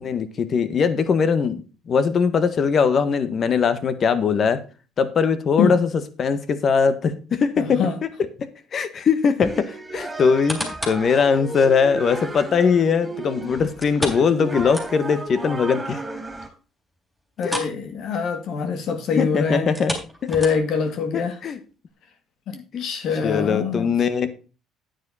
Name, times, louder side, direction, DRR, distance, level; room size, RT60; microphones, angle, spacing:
voice 1, 0.0-1.6 1.9-4.6 5.0-5.9 6.2-7.8 8.7-16.0 17.4-17.5 19.1-19.9 21.1-21.6 22.5-22.8 23.2-24.3, left 6 dB, 45° left, 1.6 m, -21 dB
voice 2, 7.6-7.9 17.4-19.7 20.3-21.4 22.5-23.9, left 5 dB, 60° left, 2.5 m, -24 dB
sound 1, 9.4-16.5, right 2 dB, 15° right, 3.1 m, -34 dB
sound 2, 10.2-11.1 11.6-11.7 13.8-15.3 15.6-15.7 16.1-16.2 17.4-17.8 18.1-18.3 19.6-20.9 21.5-21.6, equal, 5° left, 4.0 m, -32 dB
9.5 x 9.5 x 4.2 m
cardioid pair, 105°, 0 cm